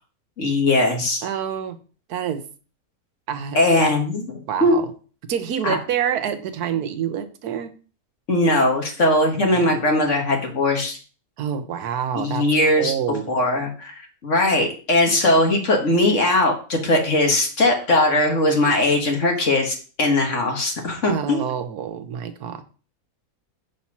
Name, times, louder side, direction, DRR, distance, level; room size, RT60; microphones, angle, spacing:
voice 1, 0.4-1.3 3.6-4.8 5.6-5.8 8.3-11.0 12.1-12.9 13.3-21.4, left 1 dB, 50° left, 2 dB, 1.8 m, -20 dB
voice 2, 1.2-1.8 2.1-2.4 3.3-3.9 4.5-4.9 5.3-7.7 9.3-9.8 11.4-12.5 12.8-13.3 21.0-22.6, right 8 dB, 80° right, 10 dB, 1.3 m, -27 dB
6.0 x 4.3 x 5.9 m, 0.38 s
omnidirectional pair, 1.6 m